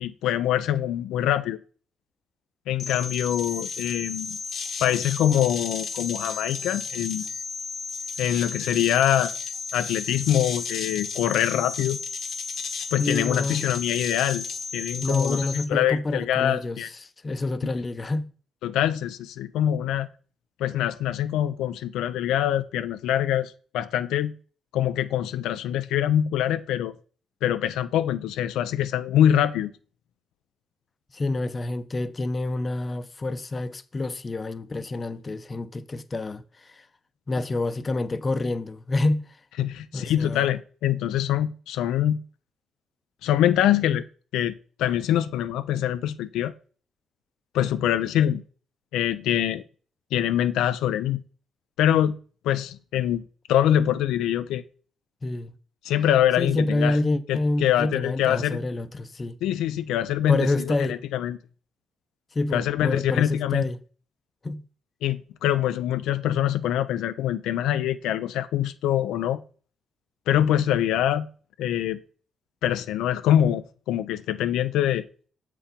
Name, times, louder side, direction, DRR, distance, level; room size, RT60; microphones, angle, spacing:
voice 1, 0.0-1.6 2.7-4.4 4.8-7.3 8.2-9.3 9.7-12.0 12.9-14.4 14.7-16.9 18.6-20.1 20.6-24.3 24.7-26.9 27.4-29.7 39.6-42.2 43.2-44.0 44.3-46.5 47.5-48.4 48.9-49.6 50.1-51.2 51.8-52.2 52.4-53.2 53.5-54.6 55.8-57.0 57.3-58.6 59.4-61.4 62.5-63.6 65.0-69.4 70.3-71.3 71.6-72.0 72.6-75.0, left 11 dB, 90° left, 0.4 m, -24 dB
sound 1, 2.8-15.7, left 5 dB, 65° left, 1.1 m, -33 dB
voice 2, 13.0-13.7 15.0-18.2 31.1-36.8 37.3-39.2 39.9-40.5 55.2-55.5 56.4-59.4 60.3-61.0 62.3-63.8 64.4-64.6, left 2 dB, 30° left, 0.7 m, -27 dB
7.1 x 4.6 x 5.1 m
cardioid pair, 90°, 0 cm